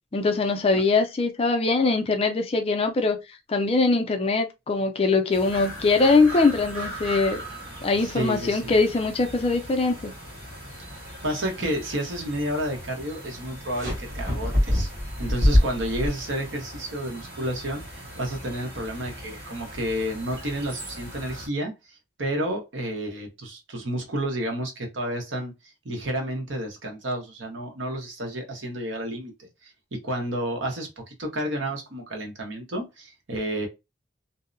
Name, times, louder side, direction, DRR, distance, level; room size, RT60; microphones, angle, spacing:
voice 1, 0.1-3.2 3.5-7.4 7.8-10.1 11.6-11.7, left 3 dB, 30° left, 0.4 m, -22 dB
sound 1, 5.3-21.5, right 1 dB, 55° right, 1.4 m, -40 dB
voice 2, 8.0-8.7 11.2-14.9 15.2-25.5 25.8-33.7, right 1 dB, 75° right, 0.9 m, -31 dB
sound 2, 13.8-16.1, left 1 dB, 40° right, 1.3 m, -23 dB
2.7 x 2.0 x 2.5 m
head